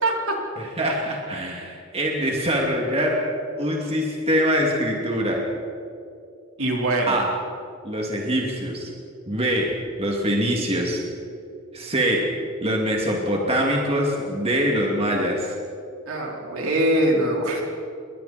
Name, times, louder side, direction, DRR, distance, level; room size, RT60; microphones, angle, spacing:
voice 1, 0.0-0.3 6.6-7.2 16.1-17.6, right 1 dB, 75° right, -1 dB, 4.6 m, -22 dB
voice 2, 0.8-3.2 3.6-5.4 7.1-7.3 7.8-8.9 9.3-11.0 11.7-12.2 12.6-15.5, equal, 30° right, -1 dB, 2.8 m, -23 dB
29.5 x 22.5 x 4.5 m, 2.5 s
head